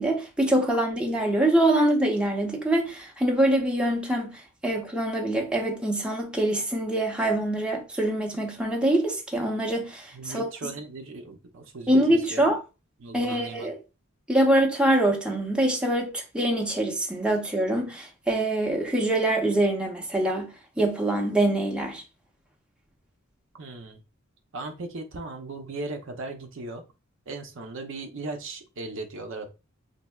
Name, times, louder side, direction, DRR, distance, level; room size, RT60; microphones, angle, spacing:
voice 1, 0.0-10.5 11.9-12.6 13.1-13.8 14.3-22.0, right 1 dB, 5° right, 0.7 m, -24 dB
voice 2, 10.1-12.4 13.0-13.7 23.5-24.0 24.5-26.8 27.3-29.5, right 2 dB, 65° right, 0.6 m, -37 dB
4.2 x 2.7 x 2.2 m
head